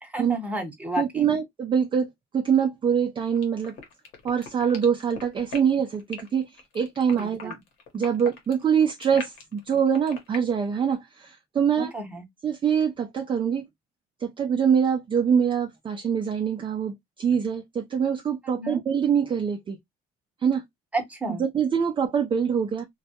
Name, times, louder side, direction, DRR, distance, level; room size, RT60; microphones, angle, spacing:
voice 1, 0.0-1.3 7.1-7.5 11.8-12.3 18.4-18.8 20.9-21.4, right 2 dB, 10° right, 0.9 m, -32 dB
voice 2, 1.0-3.7 4.2-7.5 7.9-11.9 12.4-13.7 14.2-19.8 20.4-20.6 21.5-22.8, right 7 dB, 30° right, 0.4 m, -24 dB
sound 1, 3.3-10.4, left 4 dB, 80° left, 1.0 m, -40 dB
2.2 x 2.0 x 2.7 m
cardioid pair, 110°, 17 cm